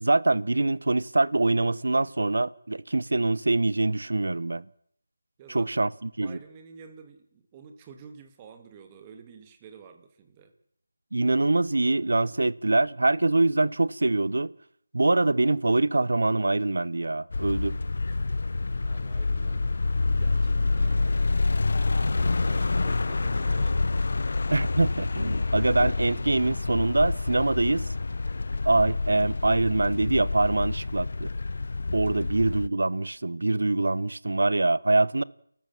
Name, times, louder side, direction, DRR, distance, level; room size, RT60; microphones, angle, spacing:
voice 1, 0.0-4.6 5.5-5.9 6.2-6.4 11.1-14.5 14.9-17.8 24.5-27.9 28.6-31.3 31.9-35.2, right 2 dB, 70° right, 1.0 m, -24 dB
voice 2, 5.4-5.9 6.2-10.5 18.1-18.2 18.8-19.7 20.0-21.5 22.2-23.8 32.1-32.4, right 6 dB, 20° right, 2.5 m, -50 dB
sound 1, 17.3-32.7, left 3 dB, 55° left, 0.9 m, -27 dB
30.0 x 14.0 x 7.3 m
figure-of-eight pair, 165°, 0 cm